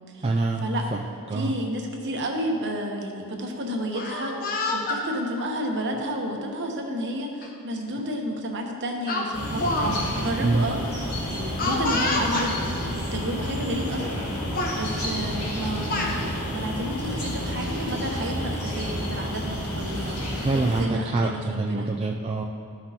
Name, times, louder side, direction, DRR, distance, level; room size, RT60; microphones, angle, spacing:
voice 1, 0.2-1.0 1.3-1.5 10.4-10.6 20.4-22.4, right 2 dB, 25° right, 0 dB, 0.3 m, -25 dB
voice 2, 1.3-10.8 11.2-21.9, equal, 55° right, 2 dB, 1.0 m, -31 dB
Speech, 3.8-5.0 5.9-6.2 7.4-7.5 7.9-8.1 9.1-9.9 10.2-10.3 11.6-12.5 13.4-13.5 13.9-14.2 14.5-14.8 15.6-16.1, left 2 dB, 40° left, 0.9 m, -28 dB
sound 1, 9.3-20.8, equal, 80° left, 2.0 m, -30 dB
13.5 x 6.0 x 2.8 m, 2.6 s
head